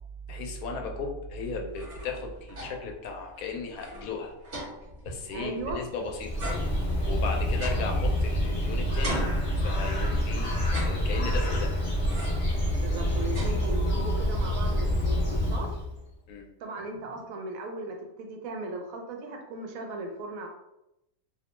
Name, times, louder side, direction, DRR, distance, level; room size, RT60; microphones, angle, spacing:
voice 1, 0.3-4.3 5.0-6.4 7.1-9.3 9.6-10.5 10.8-11.7 16.3-16.5 16.9-17.2, left 4 dB, 90° left, 2 dB, 1.0 m, -36 dB
sound 1, 1.5-3.0 3.3-3.4 3.7-5.9 6.4-8.6 9.0-10.1 10.6-11.5 12.1-12.6 12.9-14.1, equal, 45° right, 1.0 m, -39 dB
voice 2, 5.3-5.8 12.8-15.7 16.6-20.5, right 2 dB, 75° right, 3 dB, 1.0 m, -37 dB
Bird, 6.0-16.0, equal, 40° left, 0.7 m, -27 dB
2.7 x 2.1 x 2.9 m, 0.86 s
omnidirectional pair, 1.5 m